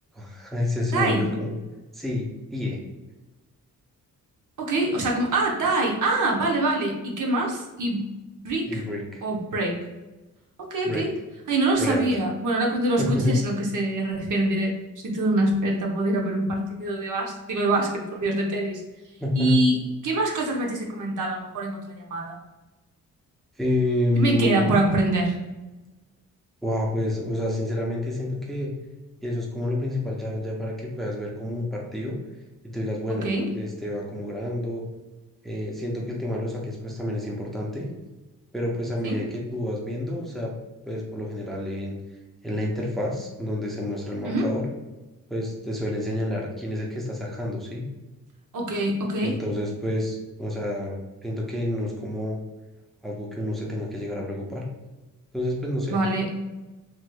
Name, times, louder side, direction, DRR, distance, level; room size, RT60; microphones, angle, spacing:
voice 1, 0.1-1.6 1.9-2.3 2.5-2.8 8.7-9.2 10.8-11.1 11.8-12.0 13.0-13.4 19.2-19.6 23.6-24.7 26.6-28.7 29.2-32.2 32.7-33.3 33.5-34.8 35.4-37.9 38.5-40.5 40.8-42.0 42.4-44.7 45.3-47.9 49.2-52.4 53.0-54.6 55.3-56.0, left 1 dB, ahead, -2 dB, 0.5 m, -28 dB
voice 2, 0.9-1.3 4.6-8.0 8.4-8.8 9.2-9.8 10.6-11.1 11.5-14.7 15.0-18.8 19.4-19.8 20.0-22.4 24.2-25.3 33.1-33.5 39.0-39.2 44.2-44.5 48.5-49.4 55.9-56.3, right 2 dB, 60° right, 0 dB, 0.8 m, -24 dB
3.1 x 3.0 x 2.2 m, 1.1 s
cardioid pair, 105°, 34 cm